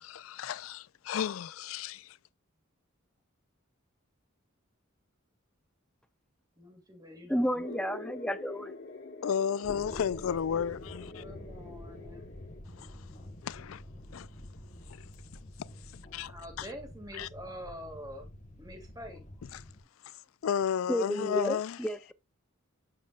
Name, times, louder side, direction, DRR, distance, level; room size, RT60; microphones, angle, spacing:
voice 1, 0.0-2.2 9.2-11.2 12.8-12.9 13.4-13.8 14.1-14.3 14.9-15.1 15.9-16.3 16.6-16.7 17.1-17.3 19.5-19.6 20.4-21.8, left 8 dB, 75° left, 0.4 m, -33 dB
voice 2, 6.6-7.8 11.2-12.3 16.3-18.3 18.6-19.2 20.8-21.4, equal, 20° right, 2.1 m, -46 dB
voice 3, 7.3-8.7 20.9-22.1, equal, 5° left, 0.6 m, -31 dB
sound 1, 7.6-12.6, left 3 dB, 60° left, 1.6 m, -44 dB
sound 2, 9.6-19.8, left 1 dB, 35° left, 1.2 m, -48 dB
7.5 x 7.4 x 2.4 m
head